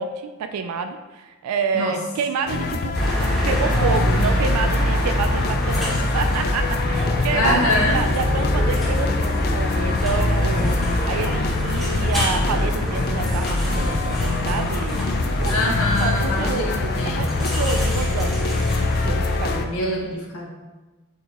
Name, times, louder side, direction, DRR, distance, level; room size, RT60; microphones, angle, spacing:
voice 1, 0.0-2.9 3.5-10.8 11.1-16.7 17.0-18.5 19.0-19.7, right 5 dB, 85° right, 6 dB, 0.3 m, -28 dB
sound 1, 2.5-19.7, left 3 dB, 45° left, 0.3 m, -25 dB
sound 2, 2.9-19.5, equal, ahead, 1.2 m, -25 dB
voice 2, 7.3-8.0 15.5-17.4 19.5-20.5, left 1 dB, 70° left, -1 dB, 0.8 m, -24 dB
6.6 x 2.8 x 2.9 m, 1.2 s
head